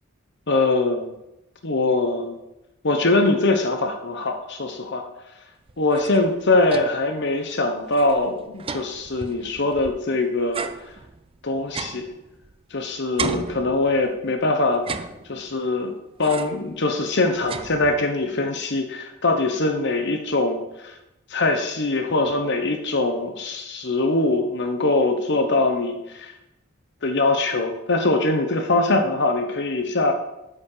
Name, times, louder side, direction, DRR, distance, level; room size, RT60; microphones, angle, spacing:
voice 1, 0.5-1.1 1.6-2.4 2.8-5.1 5.8-10.6 11.4-12.1 12.7-14.8 15.3-15.9 16.2-21.0 21.3-26.3 27.0-30.1, left 2 dB, 55° left, 5 dB, 1.0 m, -22 dB
sound 1, 5.7-7.1 7.5-7.6 7.9-10.1 10.5-12.8 13.2-14.3 14.7-15.6 16.2-16.7 17.1-18.2, right 4 dB, 25° right, 0.4 m, -34 dB
8.6 x 5.2 x 6.7 m, 0.89 s
head